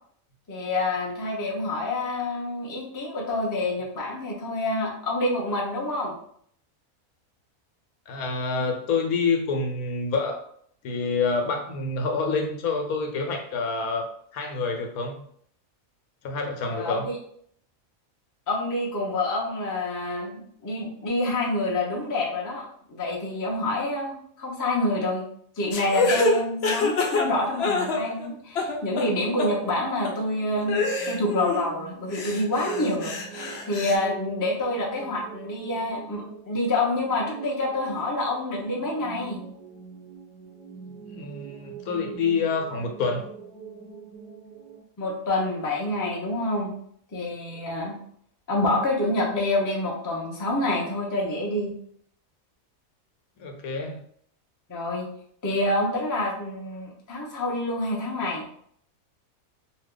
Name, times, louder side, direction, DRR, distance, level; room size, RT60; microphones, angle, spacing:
voice 1, 0.5-6.1 16.7-17.2 18.5-25.2 25.6-39.4 45.0-46.7 47.1-48.0 48.5-51.7 54.7-55.1 55.4-58.4, left 2 dB, 25° left, -2 dB, 0.4 m, -27 dB
voice 2, 8.1-10.4 10.8-14.1 14.3-15.2 16.2-17.1 41.1-43.3 53.4-54.0, left 4 dB, 85° left, 4 dB, 1.1 m, -27 dB
sound 1, 25.7-28.3 28.5-29.1 29.4-29.5 30.0-30.1 30.7-31.7 32.1-34.0, left 3 dB, 65° left, 0.7 m, -26 dB
sound 2, 28.6-44.8, right 7 dB, 50° right, 0.5 m, -44 dB
2.8 x 2.3 x 3.7 m, 0.64 s
omnidirectional pair, 1.5 m